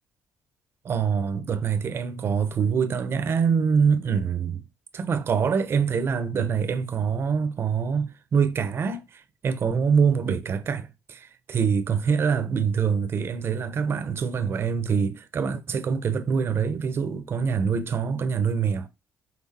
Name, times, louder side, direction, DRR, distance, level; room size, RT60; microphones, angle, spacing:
voice 1, 0.8-4.6 4.9-18.9, right 6 dB, 50° right, 1.0 m, -25 dB
6.1 x 4.0 x 4.4 m
cardioid pair, 85°, 5 cm